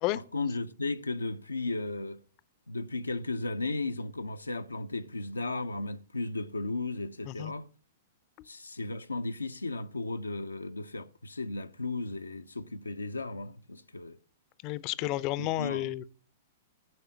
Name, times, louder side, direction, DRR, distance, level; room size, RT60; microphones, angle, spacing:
voice 1, 0.1-2.2 2.7-7.7 8.4-14.2 15.0-15.1 15.4-15.9, left 2 dB, 85° left, 0.5 m, -35 dB
voice 2, 14.6-16.1, left 16 dB, 35° left, 0.5 m, -31 dB
12.0 x 5.5 x 7.1 m
figure-of-eight pair, 105°, 0 cm